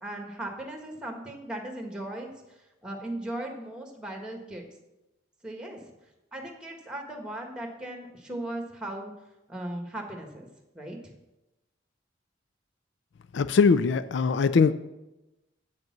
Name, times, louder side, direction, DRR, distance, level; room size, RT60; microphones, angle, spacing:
voice 1, 0.0-4.7 5.4-5.9 6.3-9.1 9.5-10.5 10.7-11.1, right 1 dB, 5° right, 2 dB, 1.5 m, -38 dB
voice 2, 13.3-14.7, left 5 dB, 65° left, 13 dB, 0.4 m, -21 dB
8.5 x 6.6 x 7.2 m, 0.98 s
head